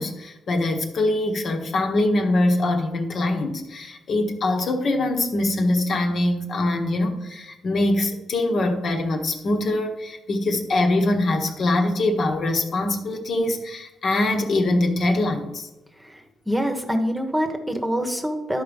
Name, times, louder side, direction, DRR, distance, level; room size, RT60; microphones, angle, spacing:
voice 1, 0.0-15.7, left 2 dB, 55° left, 3 dB, 1.3 m, -23 dB
voice 2, 16.0-18.6, equal, 10° right, 5 dB, 1.2 m, -25 dB
11.0 x 4.9 x 5.3 m, 1.0 s
cardioid pair, 90°, 0 cm